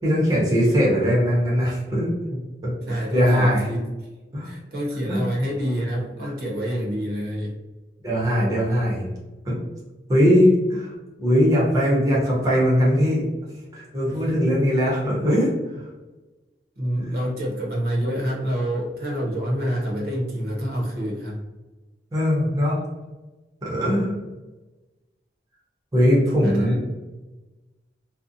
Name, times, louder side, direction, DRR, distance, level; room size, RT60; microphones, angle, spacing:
voice 1, 0.0-3.7 4.3-4.5 5.1-5.2 8.0-9.0 9.4-9.6 10.1-10.9 11.2-13.2 13.7-15.8 17.0-17.1 22.1-22.8 23.6-24.2 25.9-26.8, equal, 20° right, -6 dB, 0.6 m, -20 dB
voice 2, 2.8-4.1 4.4-7.6 16.8-21.4 26.4-26.8, equal, 55° right, -3 dB, 0.7 m, -27 dB
2.5 x 2.0 x 2.5 m, 1.2 s
head